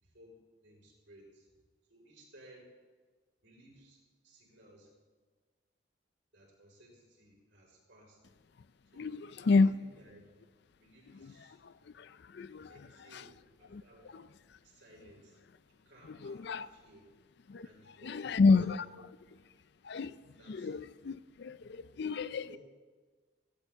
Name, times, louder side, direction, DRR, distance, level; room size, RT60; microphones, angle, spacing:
voice 1, 0.0-1.5 1.9-2.7 3.4-4.9 6.3-8.2 8.9-10.3 10.8-11.6 11.8-12.0 12.6-14.2 14.6-15.4 15.7-17.0 17.6-19.0 20.4-20.7 22.5-22.6, equal, 65° right, -2 dB, 4.9 m, -59 dB
voice 2, 9.0-9.7 11.1-12.8 13.1-13.3 13.7-13.8 14.1-14.3 16.1-16.7 17.5-17.7 18.0-18.9 19.8-20.2 20.5-22.6, left 4 dB, 55° left, 15 dB, 0.4 m, -30 dB
17.5 x 16.5 x 3.6 m, 1.5 s
head